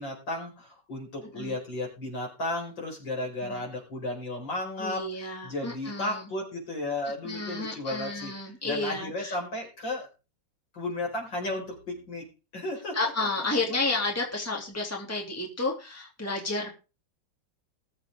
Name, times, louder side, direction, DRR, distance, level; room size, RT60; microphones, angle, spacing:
voice 1, 0.0-8.3 8.6-10.1 10.7-12.2 12.5-13.0, left 2 dB, 65° left, 0 dB, 5.8 m, -34 dB
voice 2, 4.8-6.3 7.2-9.3 12.9-16.7, left 2 dB, 5° left, 0 dB, 3.0 m, -31 dB
20.5 x 7.9 x 3.8 m, 0.31 s
omnidirectional pair, 2.2 m